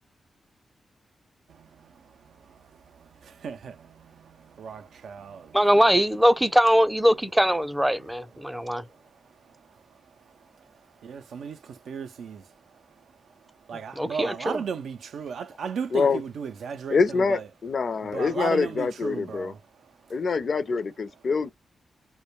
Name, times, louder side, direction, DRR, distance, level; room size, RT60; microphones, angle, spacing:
voice 1, 1.5-5.6 7.9-8.1 8.4-17.5 18.0-20.2, right 6 dB, 80° right, 0.3 m, -37 dB
voice 2, 5.5-8.8 14.0-14.6, equal, 5° right, 0.4 m, -21 dB
voice 3, 15.9-16.2 16.9-19.5 20.1-21.5, left 4 dB, 65° left, 0.4 m, -25 dB
2.2 x 2.1 x 3.0 m
cardioid pair, 55°, 0 cm